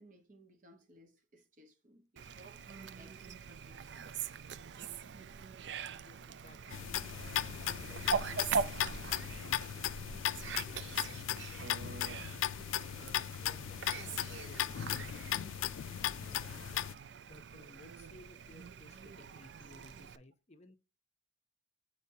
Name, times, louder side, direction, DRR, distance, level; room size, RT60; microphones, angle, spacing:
voice 1, 0.0-4.1 12.9-13.1, right 1 dB, 40° right, 1.1 m, -61 dB
Fowl, 2.2-20.2, right 6 dB, 65° right, 0.4 m, -42 dB
voice 2, 6.0-7.0 7.5-12.1 12.7-15.5 15.9-16.8 17.3-20.8, left 2 dB, 35° left, 0.6 m, -59 dB
sound 1, 6.7-16.9, left 12 dB, 85° left, 0.3 m, -37 dB
8.1 x 4.5 x 2.8 m
head